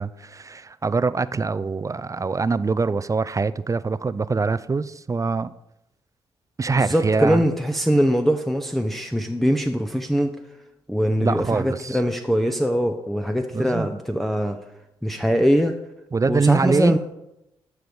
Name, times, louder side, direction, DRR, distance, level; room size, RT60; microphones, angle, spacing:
voice 1, 0.0-5.5 6.6-7.4 11.2-12.0 13.5-13.9 16.1-17.0, right 4 dB, 30° right, 16 dB, 0.4 m, -24 dB
voice 2, 6.7-10.4 10.9-14.6 15.0-15.7 16.3-17.0, equal, ahead, 4 dB, 0.8 m, -22 dB
12.5 x 4.7 x 5.2 m, 0.88 s
supercardioid pair, 50°, 11 cm